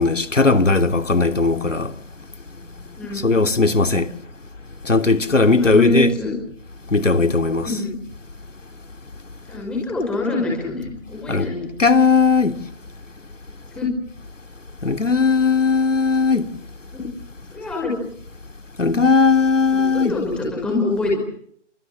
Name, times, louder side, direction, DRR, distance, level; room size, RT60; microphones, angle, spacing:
voice 1, 0.0-1.9 3.2-4.1 4.8-6.1 6.9-7.7 11.3-11.5 11.8-12.5 14.8-16.5 18.8-20.1, left 4 dB, 90° left, 3.0 m, -17 dB
voice 2, 5.5-6.3 7.6-8.0 9.5-11.7 13.7-13.9 16.9-17.1 17.5-18.0 19.7-21.2, left 2 dB, 5° left, 5.5 m, -25 dB
27.0 x 26.5 x 7.7 m
figure-of-eight pair, 165°, 36 cm